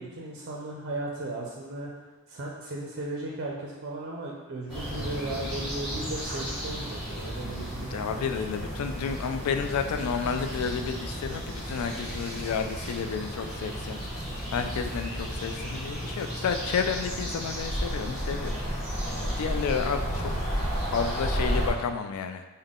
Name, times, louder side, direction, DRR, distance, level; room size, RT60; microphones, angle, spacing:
voice 1, 0.0-1.9 2.3-8.3, right 2 dB, 55° right, -3 dB, 0.4 m, -36 dB
birds chirping, 4.7-21.7, equal, ahead, 1.3 m, -33 dB
voice 2, 7.7-14.0 14.5-18.5 19.2-20.3 20.9-22.5, left 6 dB, 80° left, 12 dB, 0.3 m, -31 dB
3.6 x 2.1 x 3.6 m, 1.2 s
head